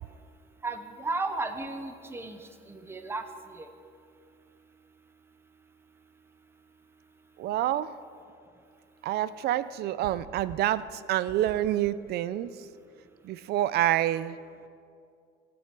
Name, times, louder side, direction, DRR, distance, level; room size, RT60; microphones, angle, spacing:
voice 1, 0.6-3.7, right 3 dB, 10° right, 8 dB, 0.8 m, -35 dB
voice 2, 7.4-7.9 9.0-12.5 13.2-14.4, right 13 dB, 50° right, 16 dB, 0.5 m, -27 dB
18.5 x 8.7 x 6.0 m, 2.3 s
cardioid pair, 165°, 21 cm